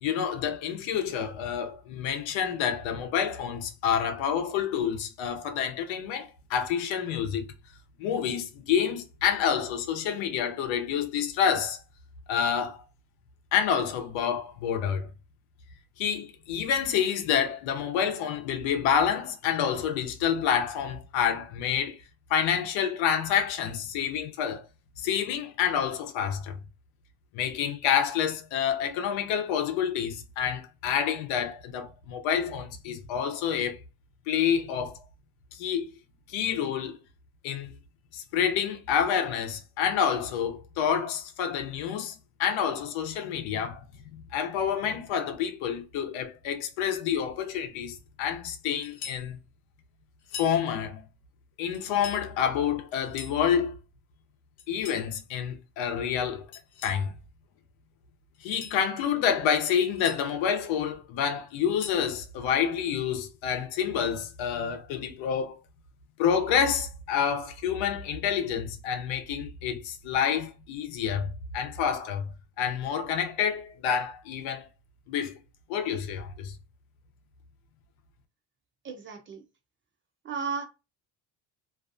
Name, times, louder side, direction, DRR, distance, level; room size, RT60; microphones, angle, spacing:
voice 1, 0.0-7.5 8.0-11.8 12.3-12.8 13.5-15.1 16.0-22.0 22.3-24.6 25.0-26.6 27.3-33.8 34.3-35.0 35.5-35.9 36.3-37.0 37.4-37.7 38.1-42.1 42.4-43.8 44.3-49.4 50.3-51.0 51.6-53.7 54.7-56.4 56.8-57.1 58.4-65.6 66.2-72.3 72.6-74.7 75.1-75.4 75.7-76.6, left 8 dB, 90° left, 0.7 m, -28 dB
sound 1, 48.8-49.3 50.2-50.6 51.7-52.2 52.9-53.4 54.6-55.1 56.5-57.0 58.3-58.8 59.7-60.2 61.5-62.1, left 7 dB, 55° left, 0.7 m, -43 dB
voice 2, 78.8-79.4 80.2-80.6, right 5 dB, 30° right, 0.4 m, -34 dB
2.6 x 2.3 x 2.5 m
cardioid pair, 165°, 44 cm